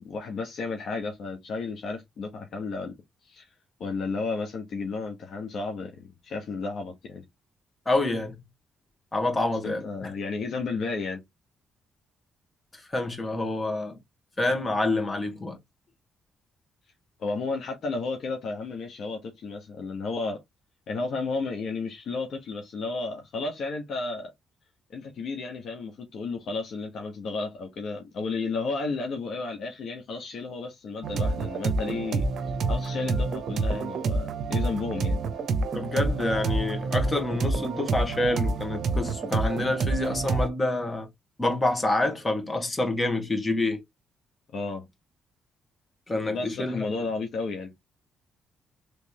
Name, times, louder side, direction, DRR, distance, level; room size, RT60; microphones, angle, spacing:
voice 1, 0.0-2.9 3.2-3.4 3.8-7.2 9.6-11.2 17.2-20.4 20.9-24.3 24.9-32.2 32.7-35.2 44.5-44.9 46.3-47.7, left 3 dB, 65° left, 1.1 m, -32 dB
voice 2, 7.8-8.4 9.1-10.1 12.7-14.0 14.4-15.6 35.7-41.1 41.4-43.8 46.1-46.8, left 2 dB, 25° left, 1.7 m, -27 dB
sound 1, 31.0-40.5, right 3 dB, 65° right, 0.7 m, -28 dB
3.4 x 3.1 x 2.8 m
supercardioid pair, 70°, 0 cm